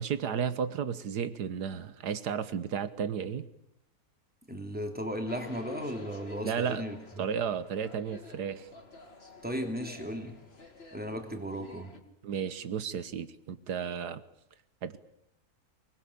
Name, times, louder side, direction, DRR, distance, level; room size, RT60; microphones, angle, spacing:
voice 1, 0.0-3.4 6.4-6.8 7.2-8.7 12.2-14.2 14.8-15.0, right 7 dB, 90° right, 13 dB, 1.7 m, -33 dB
voice 2, 4.5-7.3 9.4-10.4 10.9-11.9, equal, 5° right, 4 dB, 2.9 m, -36 dB
sound 1, 5.3-12.0, left 3 dB, 40° left, 2.7 m, -49 dB
24.5 x 20.5 x 8.5 m, 0.79 s
omnidirectional pair, 1.7 m